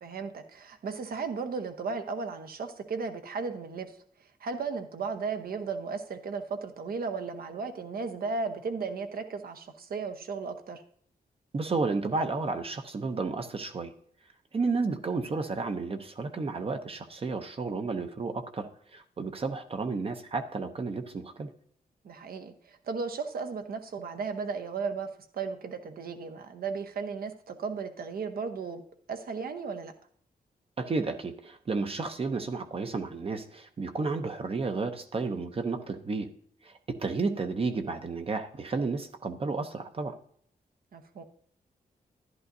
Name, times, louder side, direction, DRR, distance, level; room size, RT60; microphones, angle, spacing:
voice 1, 0.0-3.9 4.4-10.8 22.0-25.1 25.3-28.8 29.1-29.9 40.9-41.2, right 5 dB, 70° right, 6 dB, 0.9 m, -35 dB
voice 2, 11.5-13.9 14.5-21.5 30.8-36.3 36.6-40.2, right 4 dB, 35° right, 7 dB, 0.7 m, -32 dB
11.0 x 11.0 x 2.6 m, 0.63 s
wide cardioid pair, 125°, 16 cm